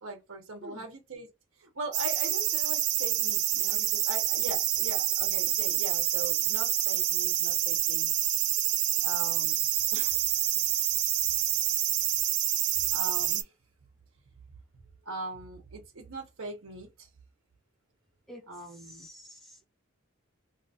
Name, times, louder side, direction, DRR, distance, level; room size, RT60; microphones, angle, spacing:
voice 1, 0.0-1.3 1.6-8.1 9.0-9.6 9.9-10.2 10.8-10.9 12.9-13.5 15.0-17.1 18.5-19.1, right 2 dB, 75° right, 0.9 m, -41 dB
sound 1, 1.9-13.4, right 13 dB, 55° right, 0.4 m, -27 dB
voice 2, 18.3-19.6, equal, ahead, 0.6 m, -49 dB
2.8 x 2.5 x 2.7 m
head